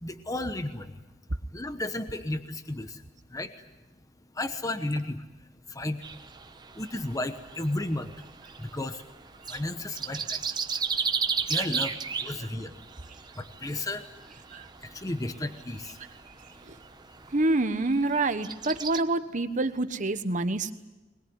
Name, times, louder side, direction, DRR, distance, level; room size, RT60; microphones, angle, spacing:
voice 1, 0.0-0.9 1.5-3.0 3.3-3.5 4.3-5.3 5.7-6.0 6.7-8.1 8.6-9.0 9.5-10.4 11.5-11.9 12.2-12.8 13.3-14.1 14.8-16.0, left 1 dB, 20° left, 8 dB, 1.1 m, -33 dB
sound 1, 6.0-19.0, right 6 dB, 25° right, 1.0 m, -36 dB
voice 2, 17.3-20.7, right 2 dB, 40° right, 10 dB, 1.2 m, -27 dB
22.0 x 21.5 x 9.5 m, 1.1 s
head